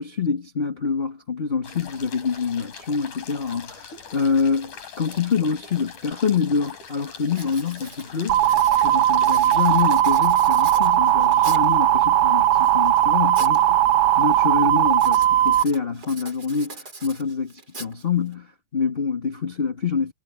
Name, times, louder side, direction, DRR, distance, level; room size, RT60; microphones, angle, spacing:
voice 1, 0.0-8.4 8.8-13.8 14.2-20.1, left 5 dB, 35° left, 0.9 m, -26 dB
sound 1, 1.6-10.0, left 6 dB, 75° left, 5.1 m, -42 dB
Writing, 6.1-6.2 6.7-6.9 7.3-11.8 12.4-13.6 13.9-14.3 14.9-18.3, right 3 dB, 30° right, 4.3 m, -41 dB
sound 2, 8.3-15.6, right 12 dB, 80° right, 1.5 m, -18 dB
omnidirectional pair, 3.6 m